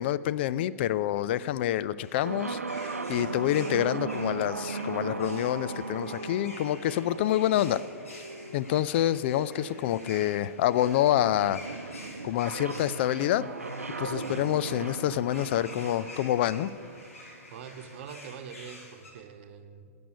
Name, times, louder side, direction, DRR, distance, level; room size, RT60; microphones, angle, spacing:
voice 1, 0.0-7.8 8.5-11.6 12.2-13.5 14.0-16.7, left 12 dB, 50° left, 16 dB, 0.4 m, -27 dB
sound 1, 2.0-19.1, left 1 dB, 70° left, 3.6 m, -49 dB
sound 2, 2.2-18.0, right 3 dB, 80° right, 0.7 m, -38 dB
voice 2, 14.1-14.5 17.5-19.9, right 7 dB, 50° right, 8 dB, 1.1 m, -44 dB
14.5 x 7.0 x 9.4 m, 2.2 s
figure-of-eight pair, 100°, 8 cm